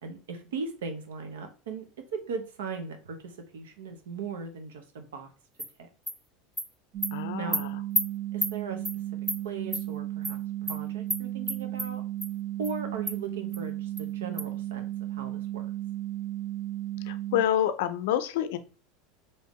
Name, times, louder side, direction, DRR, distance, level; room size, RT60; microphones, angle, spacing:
voice 1, 0.0-1.8 2.1-5.3 5.8-5.9 7.4-7.6 8.3-8.8 9.4-12.0 12.6-14.8 15.1-15.7, right 5 dB, 90° right, 6 dB, 0.7 m, -38 dB
Animal, 5.6-5.7 6.1-6.2 6.6-6.7 7.0-7.1 7.5-7.6 7.9-8.0 8.4-8.5 8.8-9.0 9.3-9.4 9.7-9.8 10.2-10.4 10.7-10.8 11.1-11.2 11.5-11.9 12.2-12.3 12.6-12.7 13.1-13.2 13.5-13.6 14.0-14.1 14.4-14.5, equal, 5° right, 0.6 m, -29 dB
sound 1, 6.9-17.4, right 14 dB, 45° right, 0.6 m, -34 dB
voice 2, 7.1-7.8 17.1-18.6, left 11 dB, 75° left, 12 dB, 0.4 m, -28 dB
3.5 x 2.7 x 3.1 m, 0.37 s
supercardioid pair, 110°, 0 cm